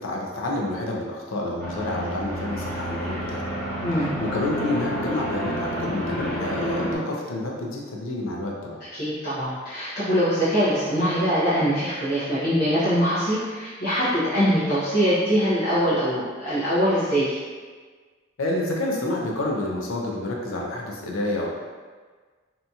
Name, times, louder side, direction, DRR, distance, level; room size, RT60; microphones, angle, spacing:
voice 1, 0.0-3.4 4.0-8.8 18.4-21.5, left 2 dB, 85° left, -1 dB, 0.5 m, -28 dB
sound 1, 1.6-7.0, equal, 15° left, 0.7 m, -30 dB
voice 2, 8.9-17.4, equal, 50° left, -13 dB, 0.7 m, -23 dB
2.8 x 2.7 x 2.3 m, 1.5 s
head